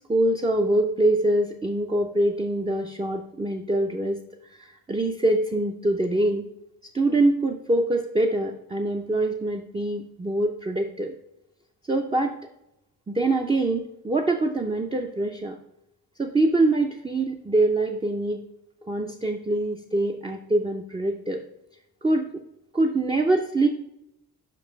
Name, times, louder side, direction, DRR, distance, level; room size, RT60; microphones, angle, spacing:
voice 1, 0.1-4.2 4.5-6.4 6.9-11.1 11.9-12.4 13.1-15.6 16.2-18.4 18.9-21.4 22.0-22.3 22.7-23.7, right 2 dB, 15° right, 2 dB, 0.5 m, -24 dB
5.3 x 5.2 x 5.2 m, 0.86 s
cardioid pair, 90°, 38 cm